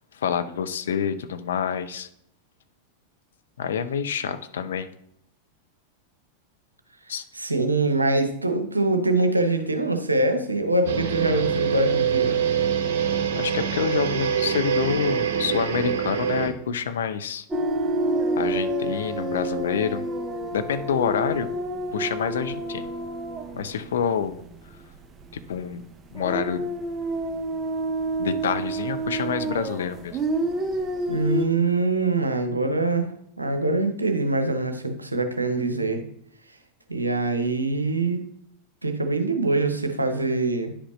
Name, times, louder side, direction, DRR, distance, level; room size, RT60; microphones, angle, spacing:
voice 1, 0.1-2.1 3.6-4.9 7.1-7.2 13.3-17.4 18.4-20.1 20.5-21.5 21.9-22.9 23.5-24.4 25.5-25.8 26.1-26.6 28.2-30.2, left 7 dB, 65° left, 10 dB, 0.5 m, -27 dB
voice 2, 7.3-12.4 31.1-33.1 33.4-36.0 36.9-38.2 38.8-40.7, right 2 dB, 80° right, 6 dB, 0.8 m, -24 dB
sound 1, 10.9-16.5, right 8 dB, 55° right, 1.0 m, -24 dB
sound 2, 17.5-24.9 25.2-25.4 26.1-31.5, right 2 dB, 20° right, 0.9 m, -29 dB
9.8 x 5.1 x 3.1 m, 0.72 s
figure-of-eight pair, 90°, 0 cm